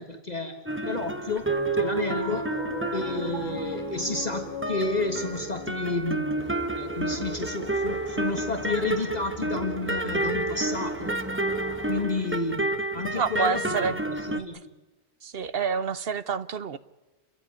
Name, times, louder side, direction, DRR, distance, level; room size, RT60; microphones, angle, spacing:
voice 1, 0.0-1.5 1.8-2.5 2.9-6.5 6.8-11.1 11.9-12.7 12.9-13.6 14.1-14.7, left 3 dB, 40° left, 1.8 m, -31 dB
sound 1, 0.7-4.3 4.6-14.4, right 2 dB, 10° right, 1.3 m, -30 dB
Piano, 1.4-11.9, left 2 dB, 45° right, 5.8 m, -39 dB
sound 2, 6.4-12.1, equal, 10° left, 4.2 m, -41 dB
voice 2, 13.2-14.0 14.3-14.5 15.2-16.8, right 6 dB, 60° right, 1.2 m, -28 dB
29.5 x 14.5 x 9.7 m
omnidirectional pair, 1.1 m